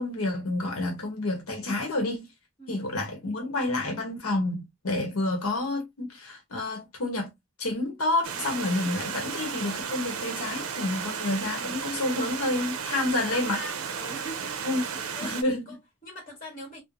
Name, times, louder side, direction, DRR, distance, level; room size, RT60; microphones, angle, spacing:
voice 1, 0.0-2.2 2.7-7.3 7.6-13.6 14.6-14.8 15.2-15.7, left 2 dB, 90° left, 0.9 m, -29 dB
Stream, 8.2-15.4, right 7 dB, 85° right, 0.5 m, -34 dB
voice 2, 13.3-14.6 15.1-16.8, left 1 dB, 40° left, 1.5 m, -42 dB
3.0 x 2.0 x 2.4 m
head